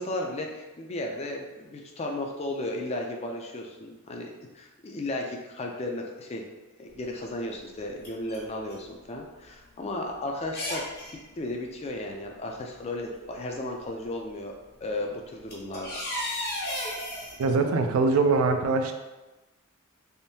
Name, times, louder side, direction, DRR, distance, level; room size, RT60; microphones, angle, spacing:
voice 1, 0.0-4.3 4.5-6.4 6.8-10.8 11.4-16.0, left 1 dB, 30° left, 1 dB, 0.4 m, -34 dB
sound 1, 6.9-7.0 7.8-8.9 9.2-9.3 9.9-10.0 10.5-11.2 12.6-12.7 13.3-13.7 14.9-15.0 15.3-17.4, left 1 dB, 50° left, 0.8 m, -34 dB
voice 2, 17.4-18.9, right 3 dB, 80° right, 6 dB, 0.4 m, -23 dB
3.5 x 2.6 x 2.7 m, 1.1 s
head